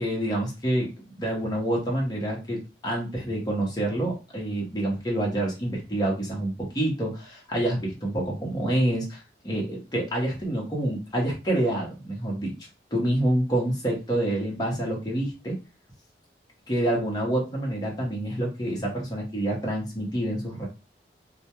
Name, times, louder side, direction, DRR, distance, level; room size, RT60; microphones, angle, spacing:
voice 1, 0.0-12.5 12.9-15.6 16.7-20.7, right 1 dB, 20° left, -2 dB, 0.7 m, -27 dB
2.2 x 2.2 x 2.8 m, 0.30 s
head